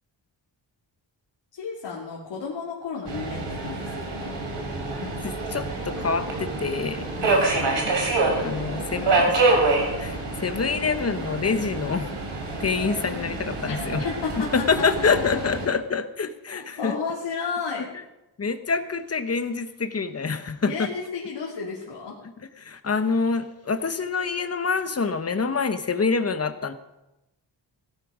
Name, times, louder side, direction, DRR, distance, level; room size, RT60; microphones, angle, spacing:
voice 1, 1.5-4.3 7.2-7.3 8.5-9.2 13.7-13.8 14.0-14.9 16.5-17.9 20.6-22.2, left 5 dB, 80° left, -4 dB, 2.8 m, -33 dB
Subway metro underground, 3.1-15.7, right 2 dB, 70° right, 3.9 m, -27 dB
voice 2, 5.2-9.4 10.0-12.1 12.6-14.1 14.5-16.9 18.4-20.9 22.6-26.7, left 5 dB, 35° left, 9 dB, 1.1 m, -26 dB
17.0 x 12.0 x 5.0 m, 0.97 s
wide cardioid pair, 110°, 44 cm